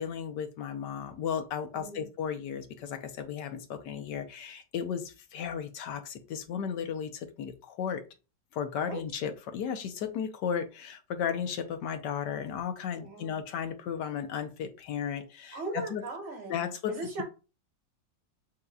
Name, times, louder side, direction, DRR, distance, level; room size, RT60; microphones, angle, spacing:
voice 1, 0.0-8.0 8.5-16.0 16.5-17.2, left 8 dB, 75° left, 8 dB, 1.2 m, -35 dB
voice 2, 1.7-2.0 8.9-9.0 13.0-13.4 15.5-17.2, right 2 dB, 85° right, 1 dB, 2.4 m, -38 dB
7.7 x 2.8 x 2.3 m, 0.31 s
omnidirectional pair, 2.0 m